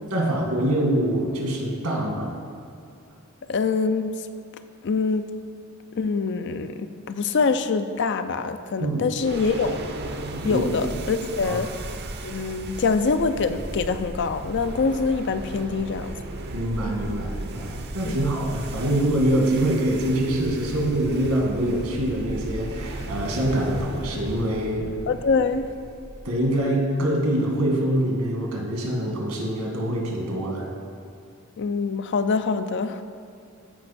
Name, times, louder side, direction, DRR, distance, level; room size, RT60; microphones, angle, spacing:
voice 1, 0.1-2.3 8.8-9.0 10.4-10.7 11.4-11.6 16.5-24.9 26.2-30.7, right 1 dB, 80° right, -1 dB, 1.9 m, -24 dB
voice 2, 3.5-4.2 4.8-5.3 5.9-9.8 10.4-11.7 12.2-16.1 18.0-18.2 25.1-25.6 31.6-33.0, left 4 dB, 55° left, 10 dB, 0.4 m, -24 dB
sound 1, 9.2-26.6, right 2 dB, 50° right, 0.7 m, -35 dB
14.5 x 5.3 x 4.3 m, 2.3 s
head